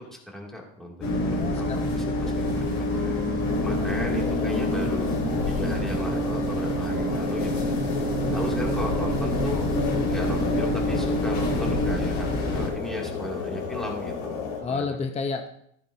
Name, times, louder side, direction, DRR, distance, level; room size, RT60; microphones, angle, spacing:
voice 1, 0.1-1.6 1.9-2.0 2.3-3.1 3.6-5.2 5.5-7.7 8.3-9.7 10.1-14.9, left 1 dB, ahead, -2 dB, 2.4 m, -36 dB
sound 1, 1.0-12.7, left 1 dB, 65° left, 3.9 m, -26 dB
voice 2, 1.2-2.4 3.7-3.8 4.1-4.4 14.6-15.5, left 4 dB, 20° left, 5 dB, 0.7 m, -32 dB
sound 2, 3.4-14.6, left 5 dB, 90° left, 3.2 m, -33 dB
14.0 x 8.9 x 2.7 m, 0.70 s
supercardioid pair, 130°, 35 cm